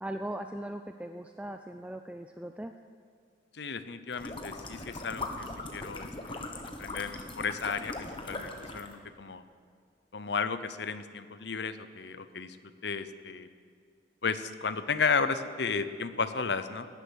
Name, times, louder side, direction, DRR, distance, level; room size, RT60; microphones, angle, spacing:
voice 1, 0.0-2.7, right 1 dB, 5° right, 6 dB, 0.3 m, -39 dB
voice 2, 3.5-5.5 5.7-6.4 6.8-9.4 10.1-12.6 12.8-13.5 14.2-16.9, left 5 dB, 65° left, 11 dB, 0.7 m, -33 dB
sound 1, 4.1-9.0, left 2 dB, 25° left, 1.2 m, -40 dB
18.0 x 10.0 x 6.4 m, 2.1 s
head